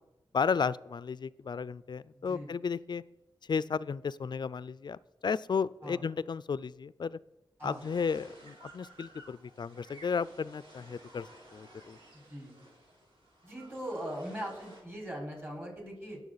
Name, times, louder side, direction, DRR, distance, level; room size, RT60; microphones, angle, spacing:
voice 1, 0.3-3.0 3.5-7.2 7.6-12.0, left 5 dB, 60° left, 18 dB, 0.4 m, -33 dB
voice 2, 2.1-2.5 5.8-6.0 7.6-7.8 12.3-12.6 13.4-16.2, equal, 25° right, 0 dB, 4.9 m, -40 dB
sound 1, 7.8-14.8, right 1 dB, 85° right, 3.5 m, -55 dB
19.0 x 7.1 x 4.0 m, 0.98 s
wide cardioid pair, 60°, 9 cm